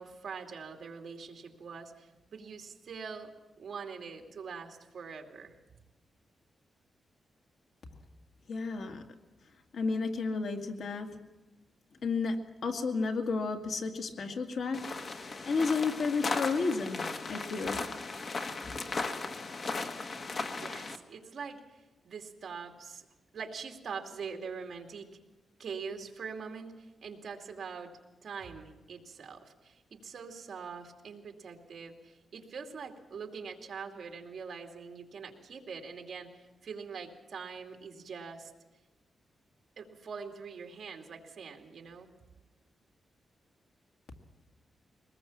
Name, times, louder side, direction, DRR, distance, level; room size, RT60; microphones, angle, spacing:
voice 1, 0.0-3.3 3.6-5.5 20.5-23.0 23.3-25.1 25.6-27.9 28.2-38.5 39.8-42.1, right 5 dB, 50° right, 3 dB, 2.6 m, -43 dB
voice 2, 8.5-9.0 9.7-11.1 12.0-14.8 15.1-17.8, left 4 dB, 60° left, 4 dB, 2.1 m, -32 dB
sound 1, 14.7-21.0, left 3 dB, 40° left, 1.4 m, -36 dB
23.0 x 20.0 x 7.3 m, 1.1 s
wide cardioid pair, 165°, 0 cm